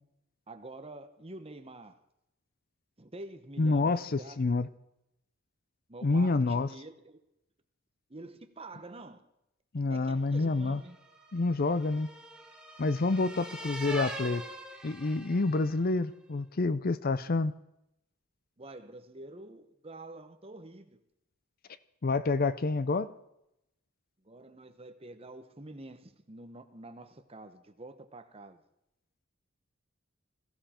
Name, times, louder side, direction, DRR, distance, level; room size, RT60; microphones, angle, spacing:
voice 1, 0.5-2.0 3.0-4.4 4.6-4.7 5.9-7.2 8.1-9.2 9.9-11.0 13.2-13.5 18.6-21.0 24.2-28.6, right 2 dB, 30° right, 1.1 m, -47 dB
voice 2, 3.6-4.7 6.0-6.7 9.7-10.8 11.3-12.1 12.8-14.4 14.8-17.5 22.0-23.1, left 3 dB, 45° left, 0.6 m, -28 dB
sound 1, 10.4-15.8, right 1 dB, 5° right, 1.8 m, -43 dB
21.0 x 15.0 x 4.4 m
head